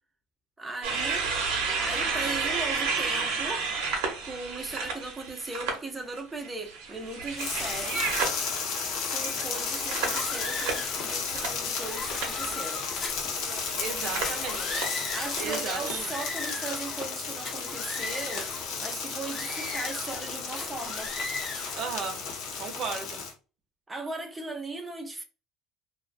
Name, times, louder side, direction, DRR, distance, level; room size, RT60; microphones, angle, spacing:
voice 1, 0.6-1.3 1.8-3.7 4.2-8.1 9.1-12.9 15.1-18.5 18.8-21.1 23.9-25.2, right 2 dB, 15° right, 0.5 m, -37 dB
sound 1, 0.8-5.8 6.1-11.8 12.1-12.4 13.3-16.0, right 4 dB, 85° right, 0.8 m, -32 dB
sound 2, 7.4-23.3, left 5 dB, 70° left, 0.7 m, -33 dB
sound 3, 9.9-11.1 11.7-13.3 14.1-15.5 15.9-17.1 17.4-18.7 19.2-20.3 20.6-21.8, left 3 dB, 30° left, 0.6 m, -37 dB
voice 2, 13.8-14.9 15.4-16.1 21.7-22.2 22.6-23.2, right 5 dB, 50° right, 0.7 m, -35 dB
2.4 x 2.2 x 2.5 m
cardioid pair, 130°, 0 cm